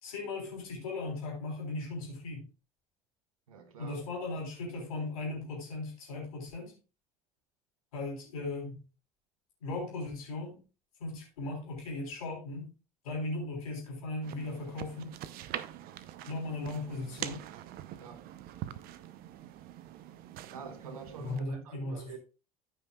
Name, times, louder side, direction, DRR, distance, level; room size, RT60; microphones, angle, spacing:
voice 1, 0.0-2.4 3.8-6.7 7.9-8.8 9.6-10.6 11.0-12.7 13.0-15.1 16.3-17.4 21.2-22.2, left 2 dB, 80° left, 3.7 m, -37 dB
voice 2, 3.5-4.0 18.0-18.3 20.5-22.2, right 5 dB, 80° right, 1.2 m, -46 dB
sound 1, 14.2-21.4, right 12 dB, 55° right, 0.8 m, -44 dB
14.5 x 5.6 x 2.3 m
hypercardioid pair, 65°, 18 cm